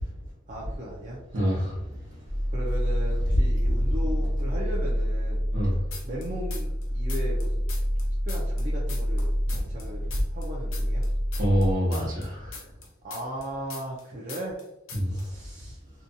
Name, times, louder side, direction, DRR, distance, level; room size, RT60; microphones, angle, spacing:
voice 1, 0.5-1.2 2.5-5.5 6.0-7.6 8.2-10.1 10.3-11.0 13.0-14.6 15.1-15.8, equal, 40° right, -6 dB, 0.4 m, -37 dB
voice 2, 1.3-1.9 5.5-5.8 11.4-12.6 14.9-15.2, equal, 80° right, -8 dB, 0.8 m, -26 dB
sound 1, 2.3-11.7, equal, 25° left, 0.5 m, -27 dB
sound 2, 5.9-6.8 7.1-9.9 10.1-14.0 14.3-14.6 14.9-15.2, left 5 dB, 80° left, 0.6 m, -41 dB
2.7 x 2.2 x 2.6 m, 0.91 s
head